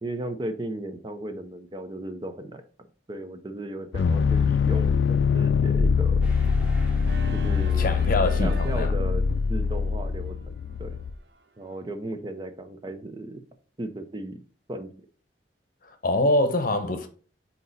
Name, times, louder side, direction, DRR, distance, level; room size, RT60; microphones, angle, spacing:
voice 1, 0.0-2.6 3.1-6.2 7.3-7.9 8.4-9.2 9.5-10.3 10.8-11.0 11.6-13.4 13.8-14.4 14.7-14.9, right 1 dB, 25° right, 0.6 m, -35 dB
sound 1, 3.9-11.1, left 5 dB, 90° left, 0.4 m, -23 dB
sound 2, 6.2-8.8, equal, 10° right, 1.8 m, -48 dB
Organ, 7.0-11.9, right 5 dB, 70° right, 0.7 m, -47 dB
voice 2, 7.8-8.9 15.8-17.1, left 2 dB, 50° left, 0.8 m, -24 dB
8.1 x 2.9 x 4.0 m
head